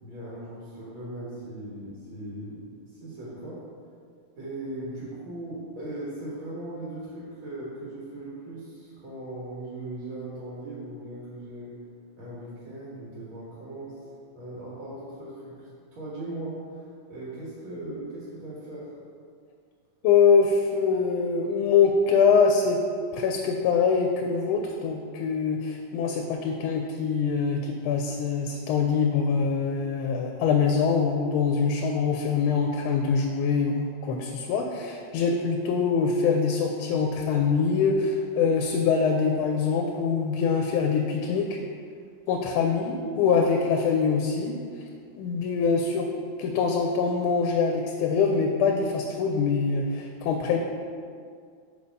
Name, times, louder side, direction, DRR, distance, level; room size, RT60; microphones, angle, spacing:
voice 1, 0.0-3.6 4.4-11.7 12.2-14.1 14.3-18.9, right 1 dB, 75° right, -8 dB, 2.4 m, -38 dB
voice 2, 20.0-22.8 23.1-41.6 42.3-44.6 45.2-46.1 46.4-50.6, left 5 dB, 85° left, 3 dB, 1.4 m, -24 dB
5.1 x 4.8 x 5.3 m, 2.1 s
omnidirectional pair, 2.3 m